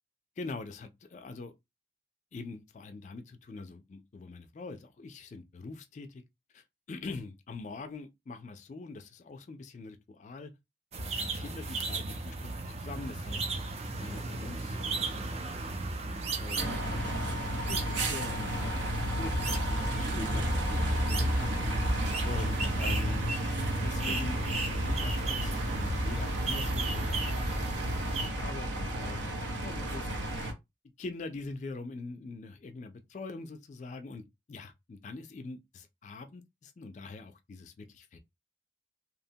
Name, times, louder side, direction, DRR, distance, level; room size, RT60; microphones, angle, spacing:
voice 1, 0.4-1.5 2.3-6.2 6.5-10.5 11.4-12.4 12.7-14.8 15.1-17.3 17.7-20.4 20.7-21.0 21.3-21.5 22.2-23.3 23.8-30.5 31.0-38.2, left 3 dB, 40° left, 0.3 m, -44 dB
sound 1, 10.9-28.3, right 2 dB, 35° right, 0.4 m, -34 dB
sound 2, 16.6-30.5, right 1 dB, 75° right, 0.7 m, -34 dB
2.8 x 2.1 x 2.7 m
head